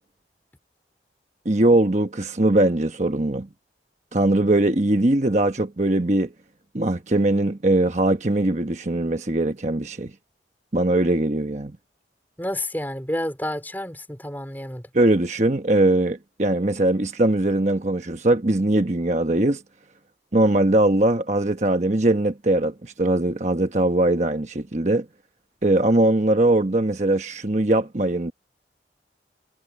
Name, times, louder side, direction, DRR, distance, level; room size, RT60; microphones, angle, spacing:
voice 1, 1.4-3.5 4.1-6.3 6.7-10.1 10.7-11.8 14.9-19.6 20.3-25.0 25.6-28.3, right 1 dB, 40° right, 1.1 m, -21 dB
voice 2, 12.4-14.8, left 1 dB, 10° left, 4.0 m, -29 dB
head